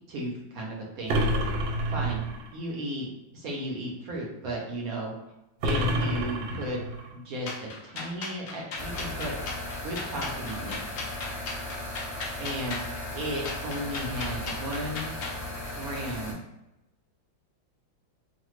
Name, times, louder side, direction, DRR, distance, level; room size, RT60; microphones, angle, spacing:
voice 1, 0.1-1.2 1.9-2.2 2.5-3.1 3.3-5.1 5.6-6.8 7.1-9.4 9.8-10.8 12.4-12.8 13.1-15.1 15.7-16.4, right 1 dB, 65° right, -2 dB, 0.9 m, -34 dB
sound 1, 1.1-2.5 5.6-7.1, right 1 dB, 90° right, 1.3 m, -28 dB
sound 2, 7.5-15.4, left 3 dB, 75° left, 0.7 m, -37 dB
sound 3, 8.8-16.3, left 1 dB, 35° left, 0.7 m, -37 dB
3.2 x 2.1 x 3.0 m, 0.93 s
omnidirectional pair, 2.1 m